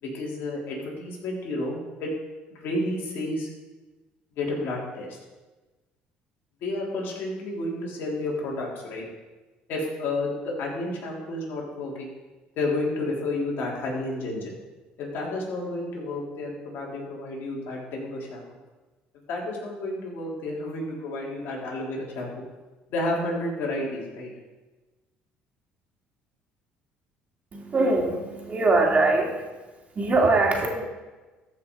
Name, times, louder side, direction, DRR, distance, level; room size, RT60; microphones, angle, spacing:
voice 1, 0.0-2.1 2.5-3.5 4.4-5.2 6.6-9.1 9.7-12.1 12.6-14.5 15.0-18.4 19.3-22.3 22.9-24.3, left 2 dB, 65° left, -3 dB, 3.5 m, -31 dB
voice 2, 27.5-29.4 29.9-30.8, right 2 dB, 35° right, 0 dB, 2.8 m, -22 dB
14.0 x 5.9 x 4.7 m, 1.2 s
supercardioid pair, 75°, 4 cm